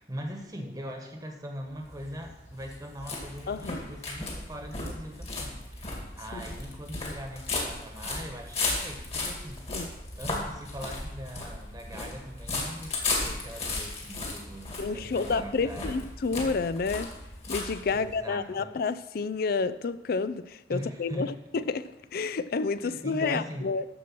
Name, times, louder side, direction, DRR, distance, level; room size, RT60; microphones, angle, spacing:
voice 1, 0.0-9.6 10.2-16.0 17.9-18.7 20.7-21.3 22.8-23.7, equal, 20° right, 1.3 m, -41 dB
sound 1, 1.7-18.2, left 3 dB, 35° left, 2.3 m, -35 dB
voice 2, 3.5-3.8 6.3-6.4 9.7-9.9 14.8-17.1 17.5-23.8, left 4 dB, 55° left, 0.4 m, -30 dB
13.5 x 4.6 x 6.0 m
head